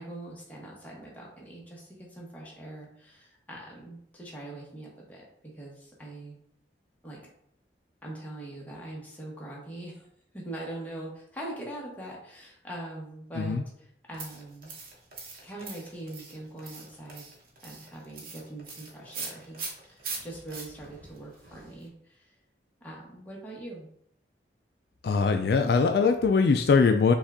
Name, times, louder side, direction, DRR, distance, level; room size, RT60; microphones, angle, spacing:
voice 1, 0.0-6.4 7.0-7.2 8.0-10.1 10.3-14.7 15.4-17.3 17.6-22.3 22.8-23.9, right 1 dB, 10° left, -4 dB, 1.0 m, -42 dB
sound 1, 14.1-21.9, right 4 dB, 50° right, 0.9 m, -42 dB
voice 2, 25.0-27.1, left 5 dB, 60° left, 5 dB, 0.3 m, -22 dB
5.3 x 2.4 x 3.5 m, 0.69 s
head